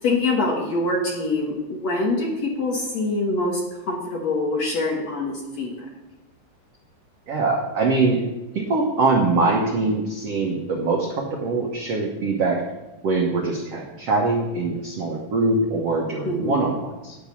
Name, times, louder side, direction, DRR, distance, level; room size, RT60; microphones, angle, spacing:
voice 1, 0.0-1.5 1.8-3.6 3.9-5.9 16.2-16.6, left 2 dB, 60° left, -1 dB, 1.9 m, -24 dB
voice 2, 7.3-8.2 8.5-12.6 13.0-17.2, right 3 dB, 85° right, 0 dB, 1.3 m, -23 dB
11.0 x 6.0 x 8.4 m, 1.1 s
omnidirectional pair, 4.7 m